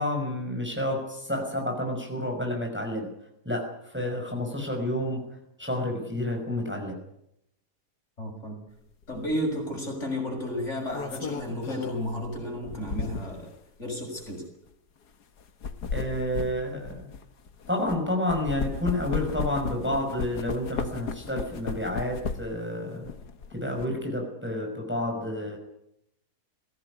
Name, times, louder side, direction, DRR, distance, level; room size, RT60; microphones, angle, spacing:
voice 1, 0.0-3.1 3.4-5.2 5.6-7.0 15.9-17.1 17.7-23.1 23.5-25.6, left 1 dB, 5° right, 1 dB, 5.6 m, -30 dB
voice 2, 8.2-8.6 9.1-13.5 13.8-14.4, left 1 dB, 45° left, 2 dB, 7.2 m, -32 dB
sound 1, 9.1-9.3 10.6-13.5 14.2-14.3 15.4-18.0 18.3-22.6 23.0-23.9, left 5 dB, 90° left, 2.0 m, -35 dB
22.0 x 16.5 x 9.9 m, 0.80 s
omnidirectional pair, 1.6 m